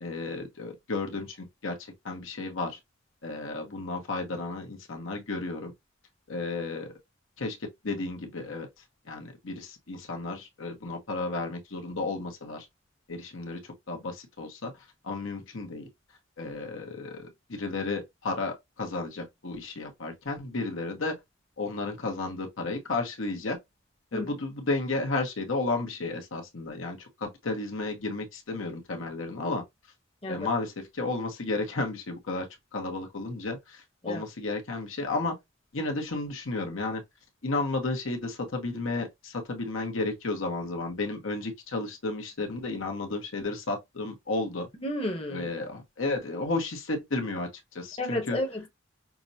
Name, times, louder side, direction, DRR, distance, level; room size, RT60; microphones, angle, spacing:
voice 1, 0.0-1.8 2.0-2.8 3.2-5.7 6.3-6.9 7.4-7.6 7.8-8.7 9.1-12.7 13.1-13.6 13.9-14.7 15.0-15.9 16.4-21.2 21.6-23.6 24.1-29.6 30.3-32.5 32.7-35.4 35.7-37.0 37.4-44.7 45.3-48.4, left 3 dB, 80° left, 0.9 m, -33 dB
voice 2, 44.8-45.5 48.0-48.7, left 1 dB, 30° left, 0.9 m, -32 dB
5.9 x 2.0 x 2.6 m
head